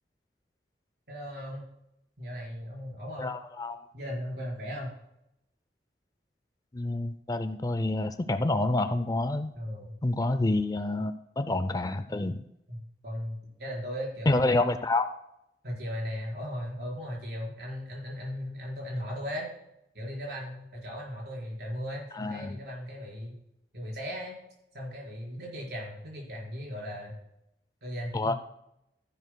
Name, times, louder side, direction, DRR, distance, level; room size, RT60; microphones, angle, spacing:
voice 1, 1.1-1.6 2.2-3.3 3.9-5.0 9.5-9.9 12.7-14.4 15.6-19.5 19.9-23.4 23.7-24.4 24.7-27.1 27.8-28.4, equal, 65° right, -3 dB, 4.5 m, -37 dB
voice 2, 3.2-3.8 6.7-9.5 10.0-12.4 14.3-15.1 22.2-22.6 28.1-28.3, left 2 dB, 20° left, 11 dB, 0.4 m, -28 dB
14.0 x 10.5 x 2.2 m, 0.82 s
head